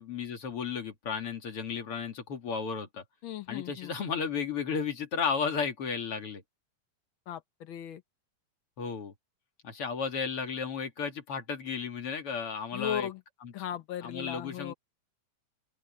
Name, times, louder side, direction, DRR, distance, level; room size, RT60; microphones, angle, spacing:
voice 1, 0.0-3.0 3.5-6.4 8.8-9.1 9.6-13.1 13.4-13.5 14.0-14.7, left 6 dB, 45° left, 2.8 m, -34 dB
voice 2, 3.2-3.9 7.3-8.0 12.7-13.2 13.5-14.7, left 10 dB, 75° left, 1.1 m, -37 dB
open air
omnidirectional pair, 3.7 m